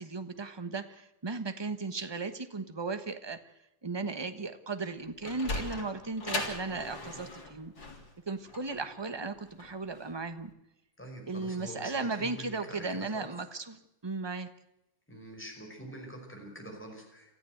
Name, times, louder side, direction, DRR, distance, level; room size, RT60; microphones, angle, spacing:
voice 1, 0.0-3.4 3.8-7.7 8.3-10.5 11.2-14.5, right 3 dB, 15° right, 9 dB, 1.0 m, -36 dB
Sliding door, 4.9-10.1, left 2 dB, 70° left, 4.2 m, -39 dB
voice 2, 11.0-13.3 15.1-17.4, equal, 5° left, 1 dB, 5.5 m, -45 dB
27.0 x 14.0 x 7.9 m, 0.87 s
omnidirectional pair, 2.1 m